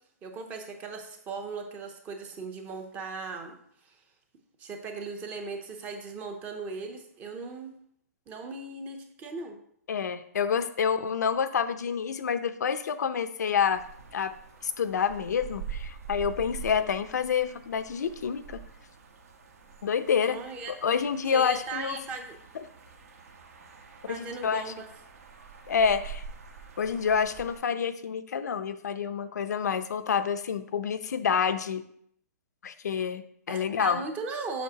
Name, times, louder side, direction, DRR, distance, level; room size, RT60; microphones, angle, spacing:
voice 1, 0.2-3.6 3.9-4.0 4.6-7.7 8.3-9.6 20.3-20.7 21.3-22.4 24.1-24.9 33.5-34.6, right 4 dB, 15° right, 5 dB, 0.7 m, -38 dB
voice 2, 9.9-13.8 14.1-14.3 14.6-18.6 19.8-20.4 20.8-22.0 24.1-24.7 25.7-26.2 26.8-31.8 32.6-34.0, left 7 dB, 80° left, 11 dB, 0.6 m, -28 dB
sound 1, 13.7-27.6, right 7 dB, 60° right, 1.2 m, -45 dB
7.3 x 6.5 x 2.8 m, 0.68 s
hypercardioid pair, 165°, 9 cm